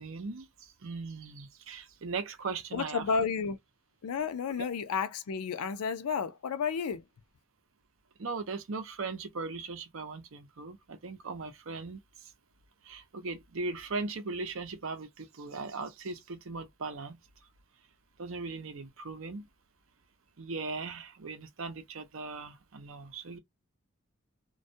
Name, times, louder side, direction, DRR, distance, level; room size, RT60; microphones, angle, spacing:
voice 1, 0.0-3.0 8.2-12.3 12.8-17.2 18.2-19.5 20.4-23.4, right 3 dB, 65° right, 0.6 m, -39 dB
voice 2, 2.7-3.6 4.0-7.0, left 6 dB, 90° left, 0.4 m, -31 dB
2.3 x 2.1 x 2.6 m
head